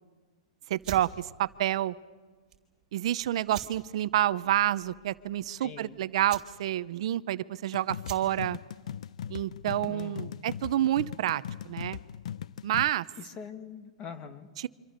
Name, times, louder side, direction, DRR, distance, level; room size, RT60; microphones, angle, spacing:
voice 1, 0.7-1.9 2.9-8.6 9.3-12.0 12.6-13.1 14.6-14.7, right 13 dB, 55° right, 16 dB, 0.7 m, -29 dB
sound 1, 0.8-10.3, right 9 dB, 15° right, 3.4 m, -48 dB
voice 2, 5.6-6.0 9.9-10.5 13.2-14.5, left 6 dB, 25° left, 10 dB, 2.0 m, -43 dB
sound 2, 7.7-12.9, left 9 dB, 65° left, 0.7 m, -39 dB
27.5 x 25.5 x 6.7 m, 1.4 s
hypercardioid pair, 155°, 4 cm